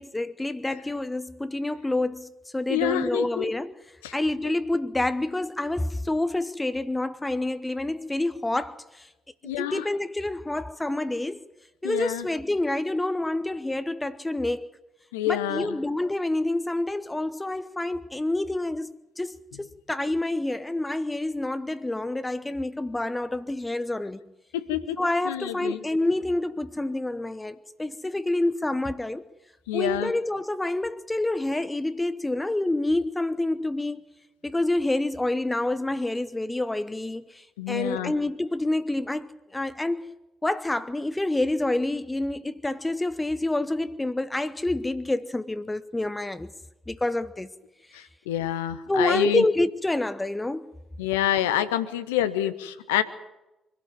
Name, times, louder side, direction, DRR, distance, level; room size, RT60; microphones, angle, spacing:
voice 1, 0.0-3.7 4.1-9.1 9.4-11.4 11.8-14.7 15.3-24.2 25.0-29.3 29.7-34.0 34.4-40.1 40.4-46.5 46.9-47.5 48.9-50.8 52.4-52.5, left 2 dB, 15° left, 1.0 m, -28 dB
voice 2, 2.7-3.5 4.0-4.1 9.4-9.8 11.8-12.2 15.1-15.8 24.5-25.0 25.2-25.8 29.7-30.1 37.6-38.1 47.9-49.4 51.0-53.0, left 11 dB, 70° left, 1.0 m, -27 dB
24.5 x 12.5 x 9.3 m
figure-of-eight pair, 45°, 0 cm